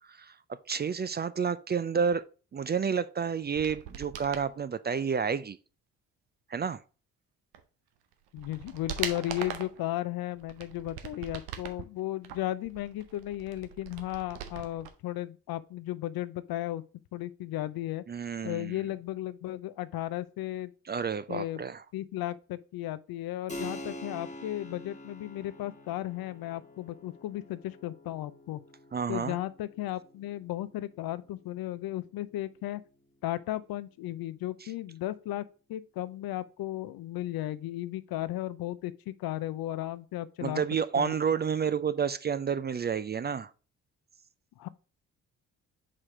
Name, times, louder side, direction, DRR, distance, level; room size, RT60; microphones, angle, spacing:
voice 1, 0.7-2.2 2.5-5.6 6.5-6.8 18.1-18.7 20.9-21.8 28.9-29.4 40.4-43.5, right 6 dB, 25° right, 0.4 m, -30 dB
sound 1, 3.5-4.5 7.5-7.6 8.1-9.8 10.4-11.8 12.2-14.9 15.2-15.3, right 9 dB, 85° right, 0.7 m, -41 dB
voice 2, 8.3-16.8 17.1-18.0 18.4-20.7 21.3-21.6 21.9-28.6 29.1-32.8 33.2-40.6 41.0-41.1 44.6-44.7, left 14 dB, 70° left, 0.6 m, -35 dB
Keyboard (musical), 23.5-33.7, left 1 dB, 20° left, 1.3 m, -47 dB
5.0 x 4.2 x 4.8 m
hypercardioid pair, 50°, 38 cm